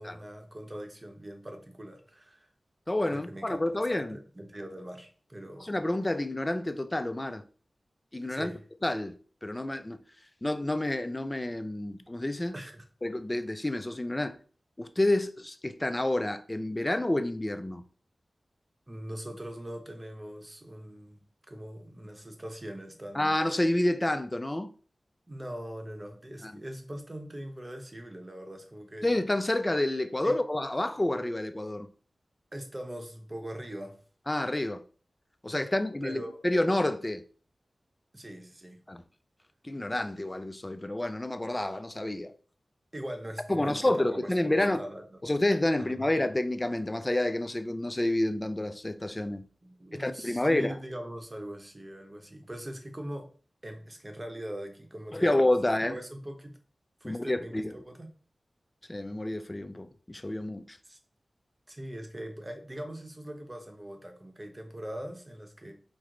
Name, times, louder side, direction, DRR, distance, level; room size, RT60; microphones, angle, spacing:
voice 1, 0.0-2.5 3.1-3.6 3.9-5.7 8.3-8.6 12.5-12.8 18.9-23.3 25.3-29.1 30.2-30.3 32.5-34.0 35.6-35.7 36.0-36.4 38.1-38.8 42.9-43.8 44.1-45.2 45.8-46.1 49.6-53.3 53.6-55.4 55.7-56.6 57.0-58.1 60.8-61.0 61.7-65.7, right 1 dB, 25° right, 0.8 m, -41 dB
voice 2, 2.9-4.2 5.6-7.4 8.1-8.5 8.8-9.2 9.4-10.0 10.4-12.6 13.0-14.4 14.8-17.8 23.1-24.7 26.4-26.5 29.0-31.9 34.3-34.8 35.4-37.2 38.9-39.0 39.6-42.3 43.5-44.8 45.2-49.4 49.9-50.7 55.1-56.0 57.0-57.7 58.9-60.8, left 1 dB, 20° left, 0.4 m, -29 dB
4.6 x 2.0 x 3.7 m
wide cardioid pair, 95°, 0 cm